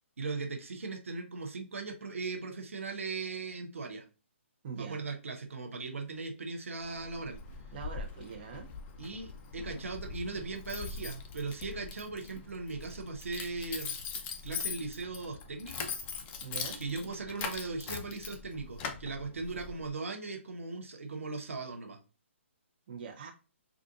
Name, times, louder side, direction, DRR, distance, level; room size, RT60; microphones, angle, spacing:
voice 1, 0.2-4.0 4.8-7.4 9.0-14.0 14.4-15.9 16.8-22.0, right 3 dB, 80° right, 3 dB, 0.7 m, -38 dB
voice 2, 4.6-5.1 7.7-8.7 16.4-16.8 22.9-23.3, right 6 dB, 45° right, 2 dB, 0.7 m, -43 dB
Keys jangling, 6.8-19.9, left 5 dB, 20° left, 0.4 m, -42 dB
3.8 x 2.5 x 2.3 m, 0.34 s
hypercardioid pair, 145°, 7 cm